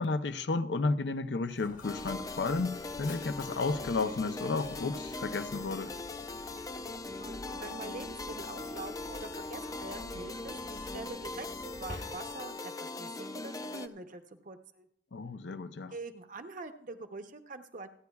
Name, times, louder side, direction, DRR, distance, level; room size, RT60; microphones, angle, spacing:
voice 1, 0.0-5.9 15.1-15.9, left 3 dB, 80° left, 0.6 m, -32 dB
Mechanisms, 1.4-12.6, left 1 dB, 50° left, 1.4 m, -50 dB
sound 1, 1.8-13.9, left 3 dB, 20° left, 0.5 m, -40 dB
voice 2, 7.2-14.9 15.9-17.9, right 3 dB, 50° right, 0.8 m, -44 dB
28.0 x 9.4 x 2.3 m
head